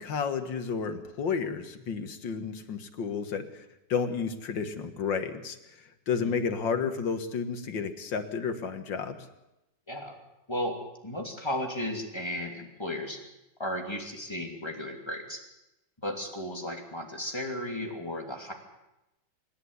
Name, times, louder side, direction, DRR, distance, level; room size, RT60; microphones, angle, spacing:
voice 1, 0.0-3.6 3.9-9.2, left 6 dB, 90° left, 8 dB, 2.3 m, -31 dB
voice 2, 10.5-10.8 11.0-13.2 13.6-15.4 16.0-18.5, left 1 dB, 15° left, 2 dB, 2.8 m, -34 dB
26.5 x 11.0 x 9.6 m, 0.93 s
omnidirectional pair, 2.0 m